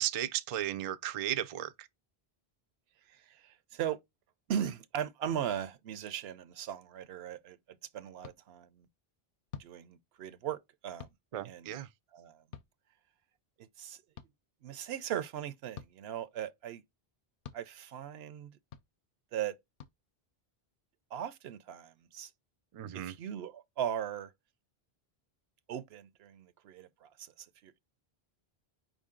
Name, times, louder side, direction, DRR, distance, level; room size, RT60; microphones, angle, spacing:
voice 1, 0.0-1.9 11.3-11.9 22.7-23.2, right 12 dB, 50° right, 0.4 m, -35 dB
voice 2, 3.1-4.0 4.5-8.9 9.6-11.1 11.4-11.7 12.1-12.4 13.6-14.0 14.6-16.8 17.5-18.6 19.3-19.6 21.1-22.3 22.9-24.3 25.7-27.7, right 9 dB, 80° right, 0.8 m, -38 dB
sound 1, 8.2-8.4 9.5-9.7 11.0-11.2 12.5-12.7 14.2-14.3 15.7-15.9 17.4-17.6 18.7-18.9 19.8-19.9, left 8 dB, 65° left, 0.7 m, -46 dB
4.9 x 2.6 x 3.6 m
omnidirectional pair, 1.0 m